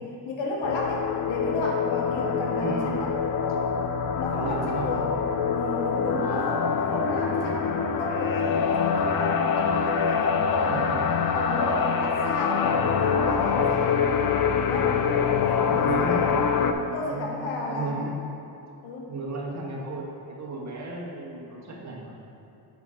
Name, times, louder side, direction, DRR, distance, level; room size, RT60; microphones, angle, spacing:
voice 1, 0.0-3.1 4.1-5.1 5.5-10.9 11.3-14.0 14.6-15.0 15.5-16.4 16.9-18.1 18.8-19.1, left 2 dB, 75° left, -1 dB, 1.0 m, -32 dB
sound 1, 0.6-16.7, left 6 dB, 45° left, 0.6 m, -25 dB
voice 2, 2.6-3.0 4.3-4.9 5.2-5.3 6.2-6.5 10.7-11.0 15.7-16.2 17.0-17.3 17.7-18.1 19.1-22.2, right 3 dB, 35° right, -3 dB, 1.5 m, -34 dB
7.3 x 5.4 x 3.7 m, 2.7 s
supercardioid pair, 75°, 46 cm